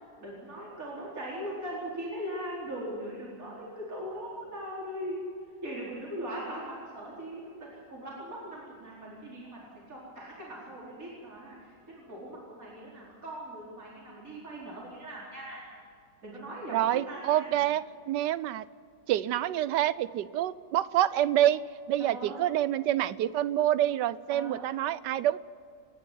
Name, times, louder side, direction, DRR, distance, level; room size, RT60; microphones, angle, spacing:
voice 1, 0.2-5.3 5.6-7.4 7.7-9.6 9.9-15.6 16.2-17.6 22.0-22.4 24.3-24.6, right 1 dB, 50° right, -6 dB, 5.0 m, -40 dB
voice 2, 16.7-18.6 19.1-25.4, right 12 dB, 75° right, 17 dB, 1.3 m, -27 dB
29.0 x 10.5 x 9.4 m, 2.4 s
omnidirectional pair, 1.9 m